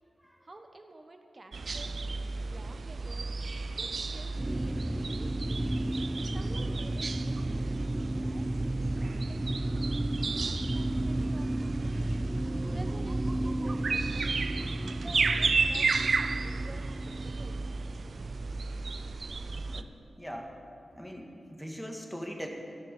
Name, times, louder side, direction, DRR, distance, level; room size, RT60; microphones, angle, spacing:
voice 1, 0.4-2.0 2.4-3.3 3.8-5.8 6.3-9.5 10.2-12.2 12.7-14.5 14.9-15.9 16.4-17.7, right 2 dB, 35° right, 5 dB, 1.3 m, -51 dB
sound 1, 1.5-19.8, right 4 dB, 65° right, 0.5 m, -33 dB
sound 2, 4.4-18.5, right 1 dB, 15° right, 0.5 m, -33 dB
voice 2, 20.2-20.5 20.9-22.5, equal, 5° left, 1 dB, 1.9 m, -41 dB
13.5 x 7.5 x 9.0 m, 2.6 s
wide cardioid pair, 85°, 0 cm